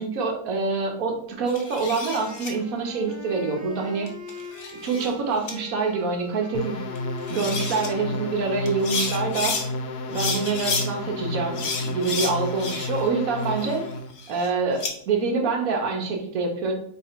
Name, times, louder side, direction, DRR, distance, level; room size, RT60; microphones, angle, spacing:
voice 1, 0.0-4.1 4.8-6.8 7.3-9.6 10.1-13.8 14.3-16.7, right 4 dB, 65° right, 2 dB, 1.2 m, -26 dB
sound 1, 1.5-2.5 4.1-5.1 5.5-5.6 7.0-7.1 7.3-7.9 8.7-9.7 10.1-10.9 11.6-13.1 13.4-14.9, left 4 dB, 50° left, 0.7 m, -31 dB
Wind instrument woodwind instrument, 2.1-10.2, left 2 dB, 30° right, 0.3 m, -42 dB
sound 2, 6.5-14.1, left 2 dB, 80° left, 1.1 m, -32 dB
3.7 x 3.2 x 4.4 m, 0.65 s
omnidirectional pair, 1.7 m